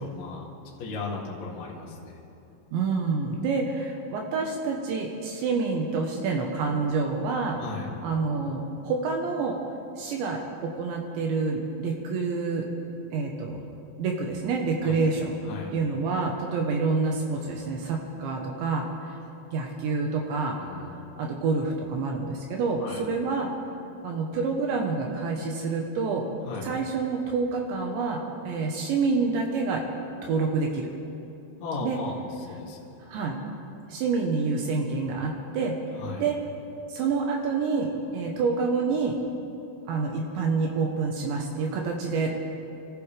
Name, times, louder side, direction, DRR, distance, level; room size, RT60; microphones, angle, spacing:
voice 1, 0.0-2.2 7.6-7.9 14.8-15.7 20.6-21.1 22.8-23.0 26.4-26.7 31.6-32.8 36.0-36.2, left 3 dB, 45° left, -4 dB, 2.7 m, -36 dB
voice 2, 2.7-7.6 8.0-9.6 10.0-12.7 13.1-13.6 14.0-15.4 15.7-18.9 19.5-20.8 21.2-23.5 24.0-26.3 26.6-29.9 30.2-30.9 31.8-32.0 33.1-33.4 33.9-35.8 36.2-36.4 36.9-39.2 39.9-42.4, right 4 dB, 75° right, 1 dB, 3.2 m, -27 dB
27.0 x 14.5 x 3.4 m, 2.8 s
omnidirectional pair, 5.8 m